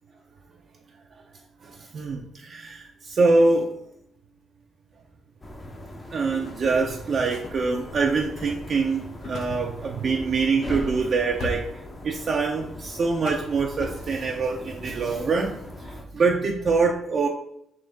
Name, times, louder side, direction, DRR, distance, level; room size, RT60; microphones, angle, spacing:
voice 1, 1.6-3.7 6.1-11.6 12.0-15.6 15.8-17.3, right 4 dB, 50° right, 1 dB, 0.4 m, -24 dB
sound 1, 5.4-16.1, left 1 dB, 25° left, 0.6 m, -40 dB
sound 2, 6.7-10.9 11.4-11.7 12.0-12.5 12.8-14.1, left 3 dB, 70° left, 0.5 m, -41 dB
3.8 x 3.0 x 3.4 m, 0.77 s
cardioid pair, 90°, 0 cm